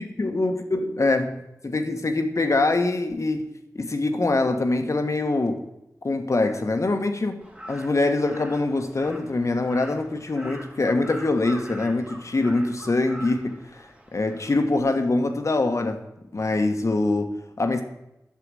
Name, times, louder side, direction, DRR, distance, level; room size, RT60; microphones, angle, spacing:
voice 1, 0.0-1.4 1.6-5.6 6.0-7.4 7.7-16.0 16.3-17.8, left 2 dB, 55° left, 1.2 m, -24 dB
Crow, 7.4-14.8, equal, 20° right, 1.8 m, -44 dB
8.3 x 6.8 x 7.5 m
wide cardioid pair, 55°, 6 cm